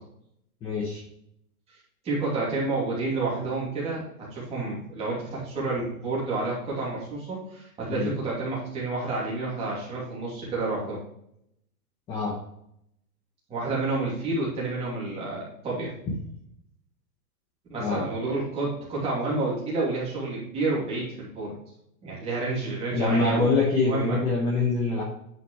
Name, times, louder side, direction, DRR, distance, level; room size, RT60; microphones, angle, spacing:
voice 1, 0.6-1.0 7.9-8.1 12.1-12.3 17.8-18.0 22.9-25.0, left 3 dB, 10° left, -4 dB, 0.9 m, -24 dB
voice 2, 2.0-11.0 13.5-15.9 17.7-21.6 22.0-23.5 23.8-24.2, right 3 dB, 15° right, -6 dB, 2.8 m, -29 dB
9.9 x 5.9 x 3.2 m, 0.74 s
hypercardioid pair, 170°, 46 cm